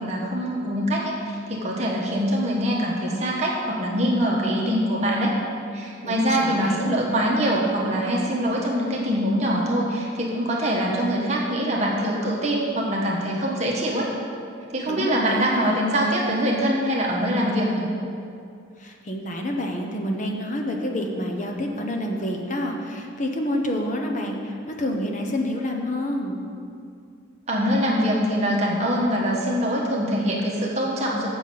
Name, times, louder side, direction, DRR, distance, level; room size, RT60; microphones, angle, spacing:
voice 1, 0.0-1.1 1.5-5.3 5.7-14.1 14.7-17.9 27.5-31.3, equal, 35° right, -3 dB, 1.1 m, -23 dB
voice 2, 6.0-7.1 14.9-15.8 18.8-26.4, left 1 dB, 40° left, 2 dB, 0.9 m, -28 dB
7.1 x 5.9 x 7.5 m, 2.4 s
head